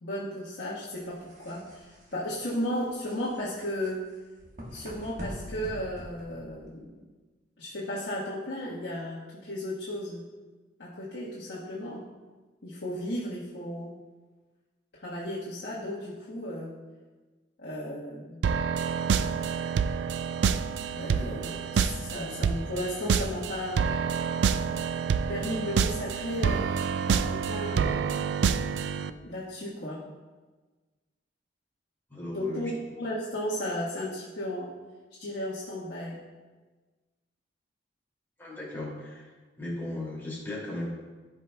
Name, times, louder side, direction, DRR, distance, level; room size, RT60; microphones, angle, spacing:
voice 1, 0.0-4.1 4.7-7.1 7.6-10.3 10.8-12.1 12.6-14.0 15.0-16.8 17.6-18.4 20.9-23.9 25.3-28.3 29.2-30.0 32.3-34.7 35.2-36.2, equal, 75° left, -8 dB, 1.4 m, -35 dB
sound 1, 0.9-6.8, equal, 45° right, 1.3 m, -44 dB
sound 2, 18.4-29.1, right 6 dB, 70° right, 0.3 m, -28 dB
voice 2, 32.1-32.6 38.4-39.3 39.6-40.9, left 1 dB, 10° left, -6 dB, 2.4 m, -36 dB
14.5 x 5.1 x 2.3 m, 1.3 s
head